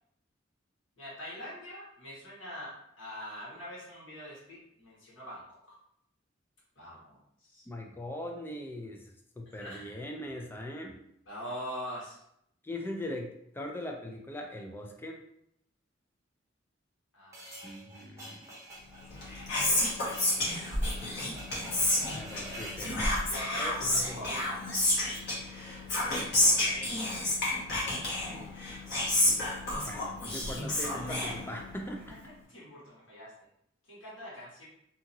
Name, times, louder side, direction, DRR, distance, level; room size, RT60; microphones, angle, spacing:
voice 1, 1.0-5.8 6.7-7.7 9.6-10.0 11.2-12.2 17.1-17.6 22.3-22.8 23.2-24.6 26.4-27.0 30.6-30.7 31.9-33.3 33.9-34.7, equal, 85° left, -7 dB, 1.4 m, -44 dB
voice 2, 7.7-9.0 9.4-11.0 12.6-15.2 17.6-18.5 22.1-23.2 23.6-24.2 29.8-32.0, left 1 dB, 10° left, 2 dB, 0.3 m, -40 dB
sound 1, 17.3-22.9, right 1 dB, 15° right, 0.8 m, -47 dB
Whispering, 19.0-31.9, left 1 dB, 60° left, 1.1 m, -30 dB
2.8 x 2.7 x 2.6 m, 0.75 s
head